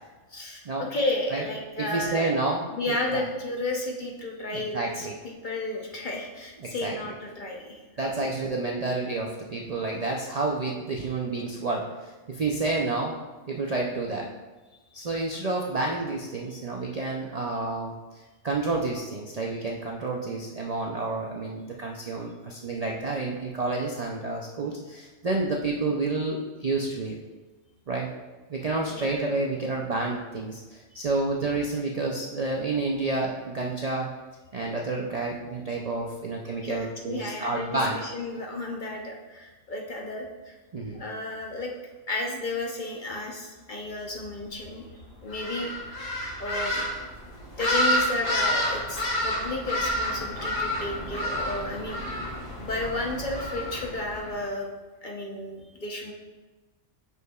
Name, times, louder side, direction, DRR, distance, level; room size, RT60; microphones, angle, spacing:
voice 1, 0.3-2.3 2.7-5.1 5.4-7.8 8.2-8.3 15.9-16.0 28.9-29.2 36.6-40.6 40.9-41.7 42.1-44.9 45.2-46.0 46.4-46.8 47.6-52.0 52.6-54.7 55.0-56.1, left 2 dB, 45° left, 0 dB, 0.9 m, -33 dB
voice 2, 1.8-3.2 4.5-5.1 6.6-6.9 8.0-13.1 13.5-14.3 14.9-17.9 18.4-27.2 27.9-28.1 28.5-34.1 34.5-38.0 40.7-41.0, right 3 dB, 50° right, -1 dB, 0.5 m, -29 dB
sound 1, 45.3-54.4, left 1 dB, 80° left, 2.0 m, -29 dB
8.1 x 6.1 x 2.3 m, 1.2 s
omnidirectional pair, 1.3 m